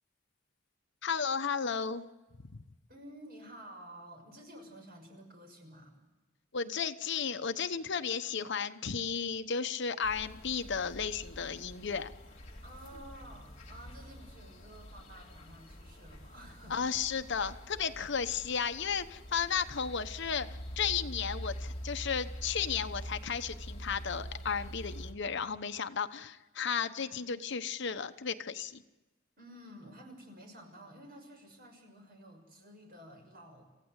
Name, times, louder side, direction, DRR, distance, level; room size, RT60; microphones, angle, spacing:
voice 1, 1.0-2.1 2.5-2.6 6.5-12.1 16.7-20.5 20.8-28.8, left 6 dB, 65° left, 10 dB, 1.0 m, -34 dB
voice 2, 2.9-6.0 12.6-16.9 29.4-33.6, equal, 50° right, 3 dB, 6.4 m, -52 dB
sound 1, 10.0-25.1, equal, 35° left, 3.9 m, -45 dB
28.0 x 15.5 x 8.1 m, 1.1 s
head